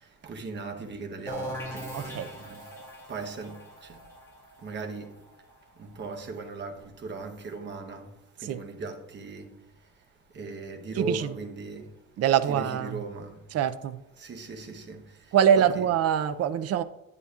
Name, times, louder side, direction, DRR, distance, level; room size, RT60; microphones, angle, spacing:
voice 1, 0.2-2.2 2.5-2.6 3.1-4.0 4.6-5.1 5.8-8.1 8.4-9.5 10.3-11.9 12.5-13.4 14.2-15.0 15.6-15.9, right 3 dB, 35° right, 1.0 m, -38 dB
sound 1, 1.3-6.8, equal, 10° left, 2.0 m, -41 dB
voice 2, 1.9-2.3 8.5-8.6 11.0-11.3 12.2-13.0 13.5-14.0 15.3-16.8, right 9 dB, 50° right, 0.5 m, -24 dB
10.5 x 9.9 x 2.4 m
cardioid pair, 165°, 33 cm